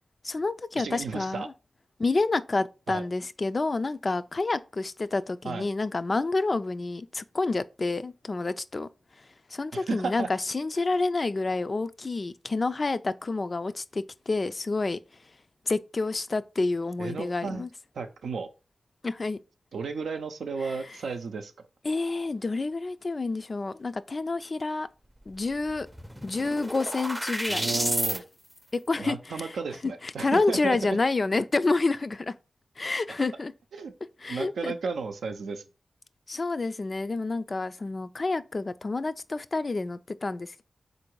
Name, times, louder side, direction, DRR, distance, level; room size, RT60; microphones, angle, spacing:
voice 1, 0.2-1.4 2.0-8.9 9.5-15.0 15.7-17.7 19.0-19.4 21.8-24.9 25.3-25.9 26.2-27.9 28.7-29.6 30.0-32.3 32.8-33.5 34.2-34.7 36.3-40.6, left 3 dB, 50° left, 0.3 m, -28 dB
voice 2, 0.8-1.5 2.9-3.0 5.4-5.6 9.7-10.3 17.0-17.7 17.9-18.5 19.7-21.5 27.5-28.3 29.0-31.0 33.8-33.9 34.3-35.6, right 4 dB, 90° right, 0.5 m, -33 dB
sound 1, 25.3-25.4 25.7-28.2, equal, 10° right, 0.5 m, -31 dB
3.8 x 2.6 x 4.5 m
cardioid pair, 45°, 0 cm